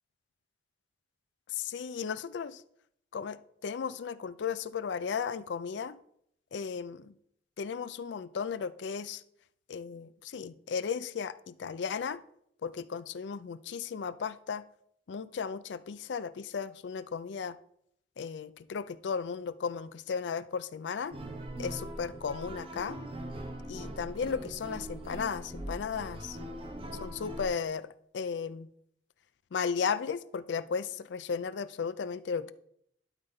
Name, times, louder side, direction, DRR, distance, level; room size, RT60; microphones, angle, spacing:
voice 1, 1.7-2.6 3.1-6.0 6.5-7.1 7.6-9.2 9.7-12.2 12.6-14.6 15.1-17.6 18.2-21.1 21.6-23.1 23.7-26.4 27.0-27.9 28.1-28.7 29.5-32.5, left 6 dB, 75° left, 15 dB, 0.4 m, -35 dB
sound 1, 21.1-27.5, right 1 dB, 30° right, 0.9 m, -41 dB
12.0 x 4.0 x 3.9 m, 0.70 s
head